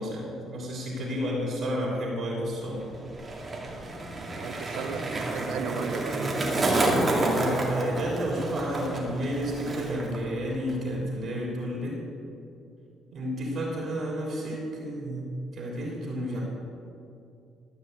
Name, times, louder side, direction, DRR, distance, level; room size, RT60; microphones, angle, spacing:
voice 1, 0.0-2.9 6.8-12.0 13.1-16.4, equal, 55° right, -3 dB, 3.5 m, -31 dB
Skateboard, 2.6-10.2 10.4-10.9, right 2 dB, 30° right, 2.2 m, -29 dB
voice 2, 4.1-6.3, right 8 dB, 85° right, 10 dB, 0.7 m, -37 dB
13.5 x 6.2 x 8.2 m, 2.6 s
cardioid pair, 95°, 0 cm